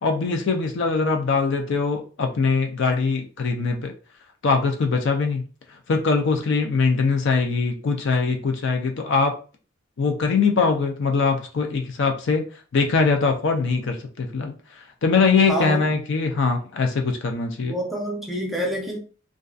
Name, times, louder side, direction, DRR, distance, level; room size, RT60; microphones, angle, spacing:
voice 1, 0.0-3.9 4.4-5.4 5.9-9.3 10.0-12.4 12.7-14.5 15.0-17.7, left 4 dB, 65° left, 0.5 m, -22 dB
voice 2, 15.5-15.9 17.6-19.0, equal, ahead, 0.6 m, -27 dB
2.6 x 2.3 x 2.4 m
head